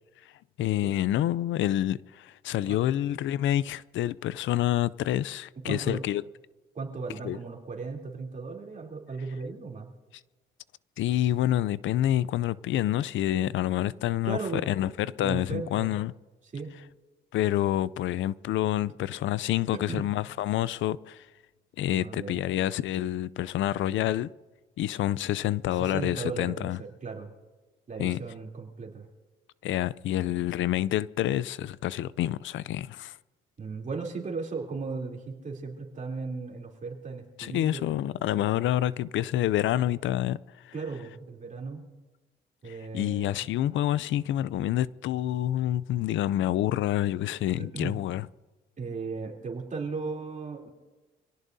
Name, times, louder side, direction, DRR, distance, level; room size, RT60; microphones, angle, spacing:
voice 1, 0.6-6.2 7.2-7.4 11.0-16.1 17.3-21.3 21.8-24.3 24.8-26.8 28.0-28.2 29.6-33.2 37.4-40.4 40.6-40.7 42.6-48.3, left 13 dB, 75° left, 0.5 m, -28 dB
voice 2, 5.6-6.0 6.7-9.9 14.2-14.7 15.2-16.0 16.4-16.7 19.1-19.2 19.7-20.1 21.9-22.4 25.7-27.3 27.9-29.1 33.6-37.9 38.4-38.5 40.7-41.8 42.6-43.5 47.6-48.0 48.8-50.7, right 4 dB, 40° right, 3.3 m, -36 dB
26.0 x 17.5 x 2.7 m
cardioid pair, 90°, 20 cm